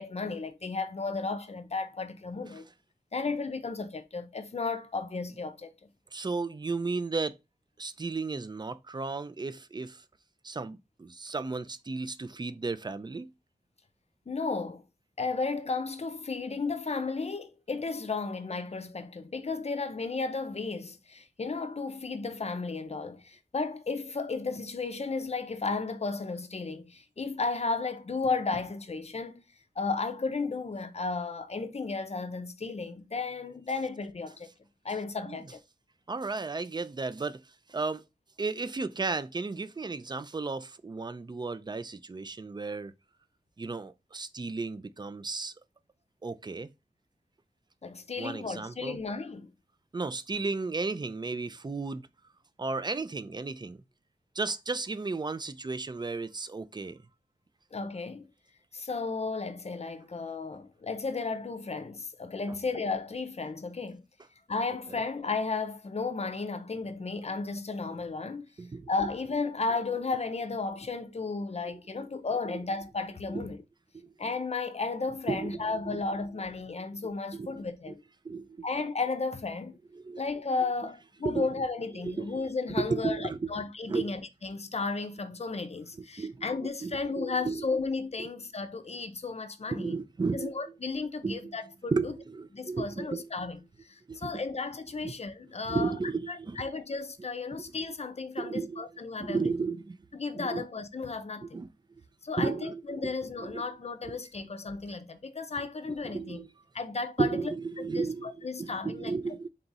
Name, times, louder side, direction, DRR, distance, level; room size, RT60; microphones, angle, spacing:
voice 1, 0.0-2.7 3.1-5.7 14.3-14.8 15.2-29.4 29.8-34.5 34.8-35.6 47.8-49.5 57.7-58.3 58.7-64.0 64.5-68.5 68.9-73.6 74.2-78.0 78.6-79.8 80.2-90.0 90.3-92.1 92.5-93.6 93.9-95.9 96.3-99.4 100.1-101.6 102.2-106.4 106.7-107.4 107.8-109.3, left 4 dB, 40° left, 0.5 m, -34 dB
voice 2, 6.1-7.4 7.8-10.0 10.4-13.3 35.3-35.4 36.1-37.4 37.7-38.0 38.4-42.9 43.6-45.5 46.2-46.7 48.2-49.0 49.9-52.1 52.6-53.8 54.4-57.0 62.5-62.6 68.6-68.9 71.6-71.8 72.4-72.6 73.3-73.4 73.9-74.1 75.3-76.0 77.3-77.6 78.2-78.7 79.9-80.2 81.2-81.5 82.0-82.5 82.8-83.5 83.9-84.1 86.0-86.4 86.8-87.7 89.7-90.6 91.2-91.6 91.9-93.5 94.1-94.4 95.0-95.2 95.6-96.6 97.6-97.7 98.4-98.8 99.2-100.0 100.3-100.6 101.4-101.7 102.4-103.1 103.4-103.6 104.1-104.2 106.0-106.5 107.2-109.5, right 4 dB, 25° right, 0.3 m, -34 dB
3.9 x 2.4 x 3.9 m
wide cardioid pair, 75°, 17 cm